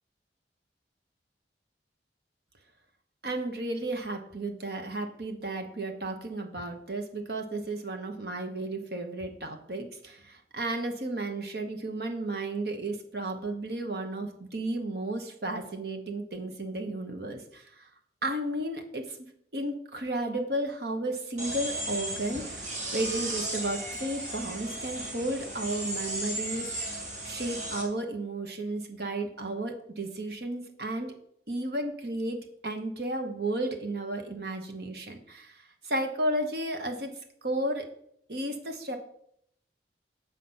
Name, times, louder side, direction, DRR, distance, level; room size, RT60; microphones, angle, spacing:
voice 1, 3.2-17.9 18.2-19.3 19.5-26.7 27.2-31.1 31.5-37.1 37.4-37.9 38.3-39.0, right 1 dB, 60° right, 5 dB, 1.2 m, -33 dB
sound 1, 21.4-27.8, right 1 dB, 45° right, 2.0 m, -35 dB
7.9 x 5.0 x 5.6 m, 0.70 s
head